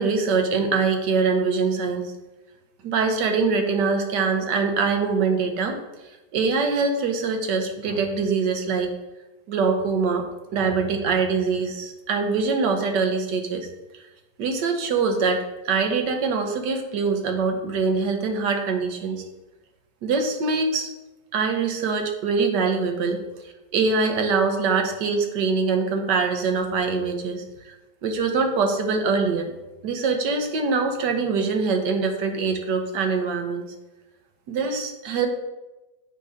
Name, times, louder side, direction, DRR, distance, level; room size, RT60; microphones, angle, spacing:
voice 1, 0.0-2.1 2.8-5.8 6.3-8.9 9.5-10.3 10.5-13.7 14.4-19.2 20.0-20.9 21.3-23.2 23.7-27.4 28.0-29.5 29.8-33.7 34.5-35.3, right 4 dB, 75° right, 4 dB, 1.4 m, -23 dB
8.5 x 2.9 x 4.9 m, 1.1 s
omnidirectional pair, 1.9 m